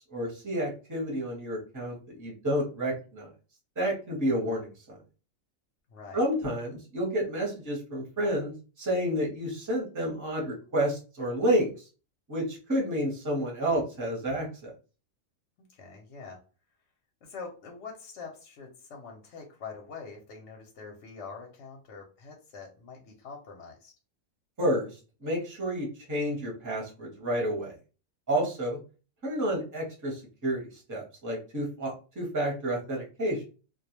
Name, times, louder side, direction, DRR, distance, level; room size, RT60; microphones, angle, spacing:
voice 1, 0.1-3.3 3.8-5.0 6.1-11.9 12.3-14.7 24.6-27.8 28.3-28.8 29.2-33.4, equal, 15° right, -2 dB, 0.6 m, -30 dB
voice 2, 5.9-6.2 15.6-16.4 17.2-23.9, left 5 dB, 65° left, 1 dB, 0.8 m, -44 dB
2.3 x 2.1 x 2.9 m, 0.36 s
omnidirectional pair, 1.5 m